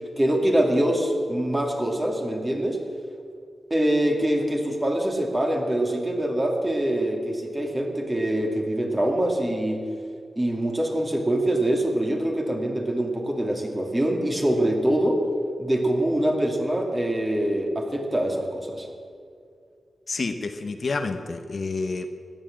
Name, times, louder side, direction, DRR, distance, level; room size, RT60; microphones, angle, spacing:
voice 1, 0.2-2.8 3.7-9.8 10.4-15.2 15.6-18.9, right 1 dB, 15° right, 1 dB, 2.5 m, -24 dB
voice 2, 20.1-22.1, left 3 dB, 50° left, 7 dB, 0.9 m, -29 dB
16.5 x 11.0 x 7.6 m, 2.3 s
wide cardioid pair, 115°, 0 cm